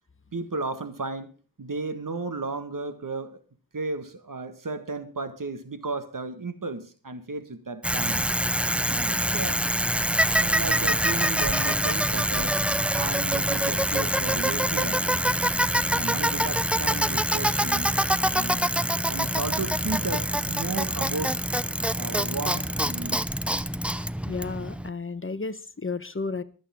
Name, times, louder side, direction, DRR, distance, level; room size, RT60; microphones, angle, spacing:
voice 1, 0.3-1.3 1.6-3.4 3.7-8.2 8.9-9.7 10.1-12.6 12.9-15.2 15.9-17.9 18.3-18.6 19.1-21.4 22.0-23.2, right 3 dB, 60° right, 10 dB, 1.6 m, -34 dB
Bicycle, 7.8-24.9, equal, 5° right, 0.6 m, -25 dB
voice 2, 24.3-26.4, left 4 dB, 35° left, 14 dB, 1.0 m, -32 dB
24.5 x 8.6 x 3.6 m, 0.37 s
wide cardioid pair, 55°, 36 cm